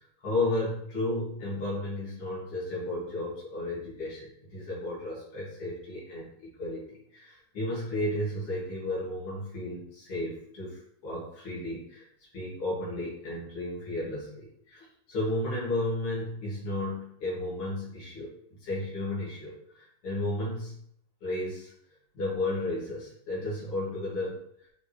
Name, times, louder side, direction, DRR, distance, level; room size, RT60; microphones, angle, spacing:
voice 1, 0.0-12.1 12.3-20.7 21.2-21.7 22.1-24.7, left 1 dB, 80° left, -7 dB, 2.9 m, -33 dB
6.3 x 5.3 x 3.1 m, 0.72 s
omnidirectional pair, 2.4 m